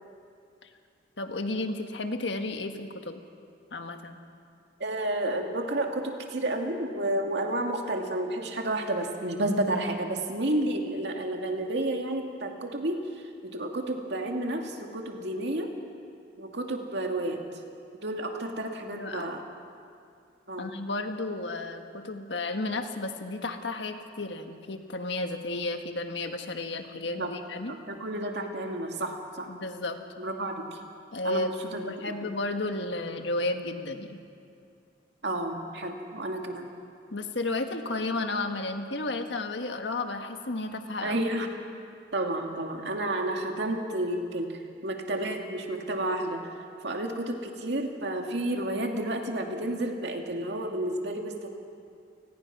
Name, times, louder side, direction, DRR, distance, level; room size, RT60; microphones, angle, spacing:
voice 1, 1.2-3.2 3.7-4.2 18.9-19.3 20.6-27.7 29.5-30.0 31.1-31.5 31.8-34.2 37.1-41.2, left 2 dB, 70° left, 6 dB, 1.6 m, -33 dB
voice 2, 4.8-15.7 16.4-17.4 18.0-19.4 20.5-20.7 27.2-27.3 27.7-29.5 30.2-30.8 31.2-31.9 32.2-32.3 35.2-36.7 41.0-41.5 42.1-46.5 46.8-51.5, right 1 dB, 70° right, 2 dB, 2.4 m, -31 dB
29.5 x 20.0 x 6.0 m, 2.4 s
head